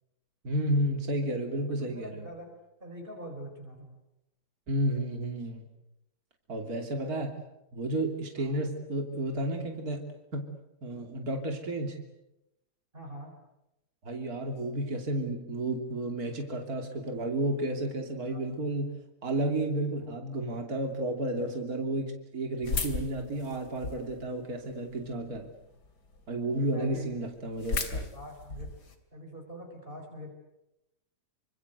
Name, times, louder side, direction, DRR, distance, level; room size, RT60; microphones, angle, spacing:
voice 1, 0.4-2.3 4.7-5.6 6.5-7.4 7.7-10.5 10.8-12.0 14.0-18.9 19.2-25.5 26.3-28.1, right 1 dB, 60° right, 4 dB, 3.4 m, -32 dB
voice 2, 1.8-2.5 2.8-4.0 8.4-8.6 12.9-13.4 18.3-18.4 26.5-27.1 28.1-28.7 29.1-30.3, equal, 30° right, 2 dB, 4.8 m, -43 dB
sound 1, 22.6-24.2 24.7-25.4 25.9-26.0 26.2-26.3 26.6-26.7 26.9-28.9, left 4 dB, 75° left, 3.5 m, -34 dB
27.5 x 26.0 x 8.1 m, 0.90 s
omnidirectional pair, 1.8 m